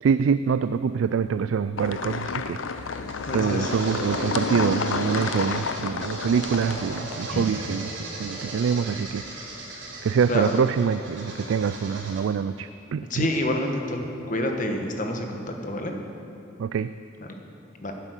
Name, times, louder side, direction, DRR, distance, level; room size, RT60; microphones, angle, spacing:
voice 1, 0.0-3.0 3.3-9.2 10.0-13.3 16.6-16.9, right 6 dB, 85° right, 13 dB, 0.3 m, -25 dB
sound 1, 1.8-7.2, left 5 dB, 80° left, 0.6 m, -30 dB
sound 2, 2.6-12.2, right 2 dB, 65° right, 3.7 m, -37 dB
voice 2, 3.0-3.7 7.3-7.4 10.3-10.6 13.1-15.9 17.8-17.9, left 1 dB, 40° left, 3 dB, 1.3 m, -28 dB
11.5 x 9.9 x 8.2 m, 2.9 s
head